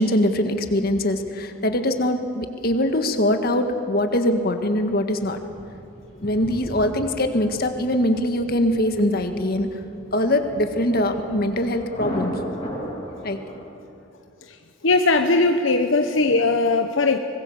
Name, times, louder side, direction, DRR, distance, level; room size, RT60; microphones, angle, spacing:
voice 1, 0.0-5.4 6.2-9.7 10.1-12.4 13.2-13.4, left 1 dB, 50° left, 6 dB, 1.7 m, -22 dB
Thunder, 4.6-13.6, equal, 30° left, 6.4 m, -36 dB
voice 2, 14.8-17.2, left 3 dB, 75° left, 6 dB, 1.0 m, -19 dB
24.5 x 20.5 x 7.3 m, 2.8 s
head